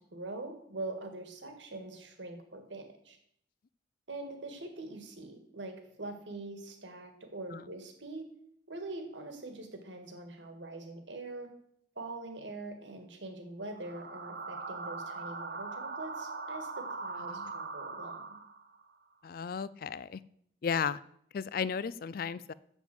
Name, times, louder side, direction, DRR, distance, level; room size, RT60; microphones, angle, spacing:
voice 1, 0.1-3.2 4.1-8.3 8.7-11.5 12.0-18.4, right 2 dB, 75° right, 6 dB, 1.8 m, -43 dB
sound 1, 13.7-18.8, right 3 dB, 55° right, 1.1 m, -41 dB
voice 2, 19.2-20.2 20.6-21.0 21.3-22.5, left 6 dB, 50° left, 19 dB, 0.4 m, -34 dB
7.2 x 7.2 x 7.8 m, 0.71 s
head